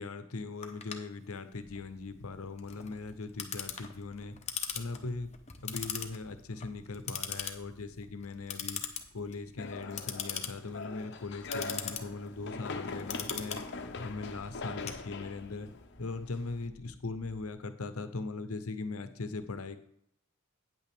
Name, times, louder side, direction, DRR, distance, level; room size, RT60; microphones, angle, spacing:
voice 1, 0.0-4.4 4.7-5.3 5.6-8.8 9.1-13.6 14.0-15.7 16.0-19.8, left 3 dB, 85° left, 10 dB, 0.9 m, -40 dB
Clock, 0.6-15.6, left 8 dB, 30° left, 0.8 m, -41 dB
sound 1, 1.5-17.5, equal, 15° right, 0.7 m, -60 dB
sound 2, 9.6-16.7, left 3 dB, 55° left, 0.8 m, -42 dB
9.2 x 8.3 x 3.6 m, 0.70 s
head